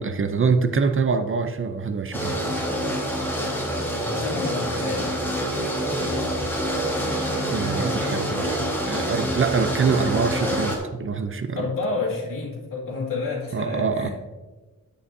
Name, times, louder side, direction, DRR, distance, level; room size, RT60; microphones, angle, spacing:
voice 1, 0.0-2.4 7.5-11.6 13.5-14.1, right 5 dB, 40° right, 9 dB, 0.5 m, -24 dB
sound 1, 2.1-10.8, equal, 5° left, 1.5 m, -26 dB
voice 2, 3.9-5.1 11.6-14.1, left 3 dB, 70° left, -3 dB, 2.3 m, -29 dB
9.7 x 8.6 x 2.7 m, 1.3 s
wide cardioid pair, 140°, 34 cm